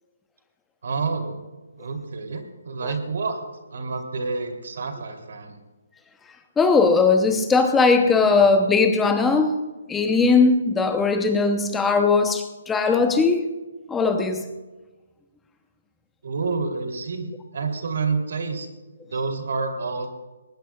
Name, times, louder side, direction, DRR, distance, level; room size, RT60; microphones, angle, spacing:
voice 1, 0.8-1.4 1.8-3.4 3.7-5.6 16.2-18.7 19.1-20.1, right 4 dB, 60° right, 4 dB, 2.9 m, -28 dB
voice 2, 6.6-9.6 9.9-13.5 13.9-14.5, left 4 dB, 5° left, 6 dB, 0.7 m, -19 dB
19.0 x 19.0 x 2.3 m, 1.2 s
hypercardioid pair, 175°, 0 cm